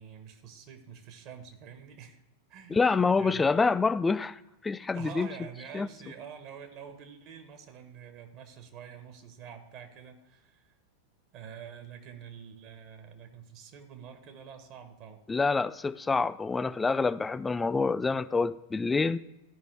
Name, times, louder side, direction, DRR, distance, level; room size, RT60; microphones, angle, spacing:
voice 1, 0.0-2.2 2.5-2.9 3.2-3.4 4.9-10.7 11.3-15.2, right 8 dB, 40° right, 1.2 m, -47 dB
voice 2, 2.7-5.3 5.7-5.9 15.3-19.2, left 4 dB, 15° left, 0.3 m, -27 dB
14.0 x 5.3 x 3.3 m
figure-of-eight pair, 90°, 0 cm